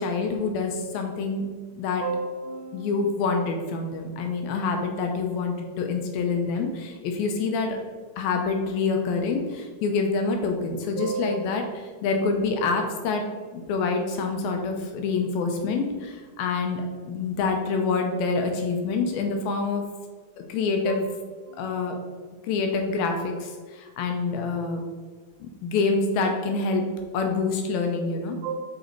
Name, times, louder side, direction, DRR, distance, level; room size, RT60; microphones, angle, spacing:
voice 1, 0.0-1.5 1.8-2.1 2.7-7.8 8.2-13.2 13.5-19.8 20.5-21.0 21.6-22.0 22.5-24.8 25.4-26.9 27.1-28.4, left 4 dB, 75° left, 4 dB, 2.5 m, -26 dB
voice 2, 2.0-2.9 11.0-11.4 20.9-21.0 21.5-21.7 28.4-28.5, right 4 dB, 75° right, 1 dB, 2.0 m, -31 dB
6.5 x 5.4 x 4.5 m, 1.4 s
omnidirectional pair, 4.5 m